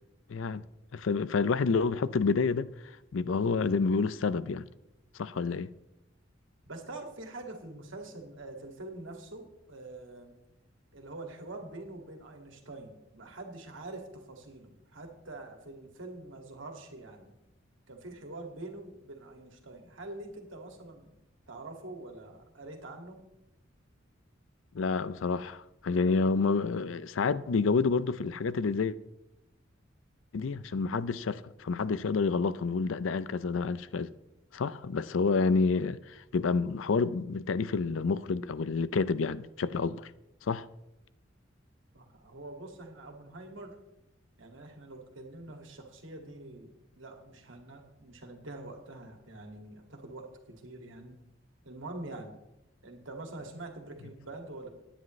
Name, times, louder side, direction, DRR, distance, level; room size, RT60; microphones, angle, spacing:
voice 1, 0.3-0.6 0.9-2.7 3.1-4.7 5.2-5.7 24.7-29.0 30.3-34.1 34.5-40.1 40.5-40.7, left 4 dB, 80° left, 0.5 m, -29 dB
voice 2, 6.7-10.4 10.9-17.3 17.9-21.1 21.5-23.2 41.9-43.8 44.4-51.2 51.6-52.4 52.8-54.7, right 2 dB, 80° right, 2.1 m, -45 dB
17.0 x 10.0 x 3.2 m
head